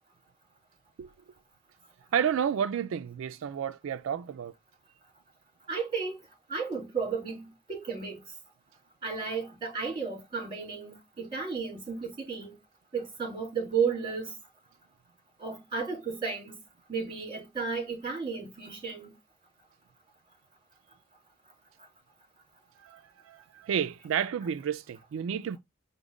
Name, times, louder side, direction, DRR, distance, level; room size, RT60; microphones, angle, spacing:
voice 1, 2.1-4.5 22.8-25.6, right 8 dB, 90° right, 0.3 m, -31 dB
voice 2, 5.7-6.2 6.5-8.2 9.0-12.6 12.9-14.3 15.4-16.6 16.9-19.1, right 5 dB, 25° right, 3.3 m, -33 dB
5.1 x 2.1 x 4.9 m
head